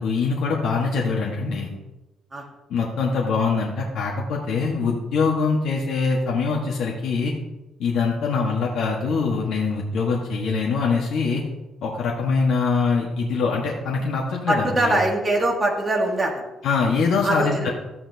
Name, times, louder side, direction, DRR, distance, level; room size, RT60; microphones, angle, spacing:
voice 1, 0.0-1.7 2.7-7.3 7.8-11.4 11.8-14.9 16.6-17.7, left 4 dB, 70° left, -2 dB, 1.4 m, -23 dB
voice 2, 14.5-16.5 17.2-17.7, right 1 dB, 20° right, 0 dB, 1.7 m, -22 dB
14.0 x 8.5 x 2.8 m, 1.0 s
cardioid pair, 145°, 0 cm